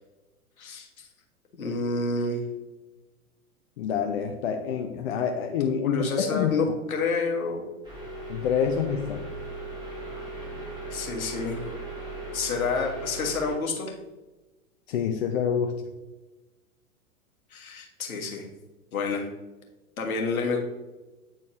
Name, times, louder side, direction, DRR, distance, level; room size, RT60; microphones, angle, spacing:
voice 1, 1.5-2.4 5.8-7.6 10.9-11.6 12.3-13.9 17.5-18.5 18.9-19.3 20.0-20.6, left 4 dB, 70° left, 1 dB, 1.6 m, -28 dB
voice 2, 3.8-6.5 8.3-9.2 14.9-15.8, left 7 dB, 45° left, 4 dB, 0.6 m, -27 dB
sound 1, 7.8-13.5, right 2 dB, 10° right, 1.8 m, -38 dB
8.8 x 4.2 x 3.1 m, 1.1 s
figure-of-eight pair, 105°, 44 cm